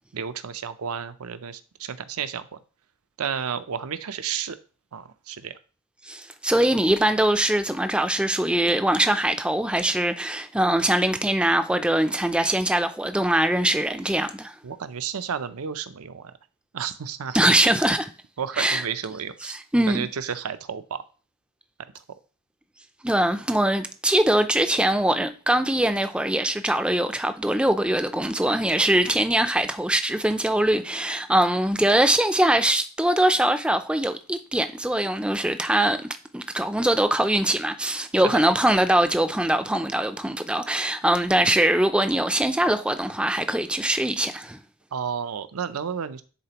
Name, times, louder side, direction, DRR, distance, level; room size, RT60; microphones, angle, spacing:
voice 1, 0.1-2.5 3.2-4.6 4.9-5.6 14.6-16.3 16.7-17.5 18.4-19.5 19.9-21.0 44.9-46.2, right 7 dB, 80° right, 0.6 m, -31 dB
voice 2, 6.0-14.5 17.3-18.1 18.6-18.8 19.4-20.1 23.0-36.1 36.3-44.6, right 1 dB, 5° right, 0.4 m, -22 dB
9.9 x 4.1 x 2.9 m
head